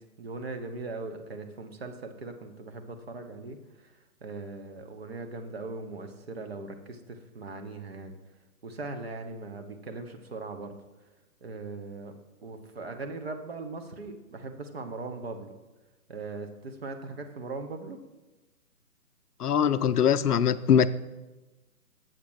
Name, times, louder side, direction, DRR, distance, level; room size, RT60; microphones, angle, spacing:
voice 1, 0.2-8.1 8.6-10.7 11.4-12.2 12.4-15.5 16.1-18.0, right 3 dB, 40° right, 0.8 m, -39 dB
voice 2, 19.4-20.9, left 8 dB, 75° left, 0.5 m, -22 dB
7.5 x 6.6 x 4.8 m
figure-of-eight pair, 145°, 46 cm